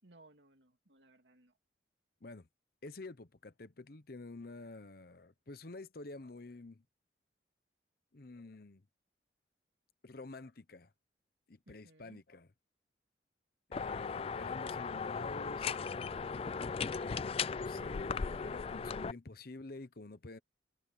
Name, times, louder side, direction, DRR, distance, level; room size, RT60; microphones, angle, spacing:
voice 1, 0.0-1.5 11.7-12.2, right 2 dB, 70° right, 2.7 m, -62 dB
voice 2, 2.8-6.8 8.1-8.8 10.0-10.9 11.5-12.5 13.7-16.4 16.9-20.4, left 2 dB, 55° left, 0.9 m, -49 dB
sound 1, 13.7-19.1, left 5 dB, 30° left, 0.3 m, -37 dB
head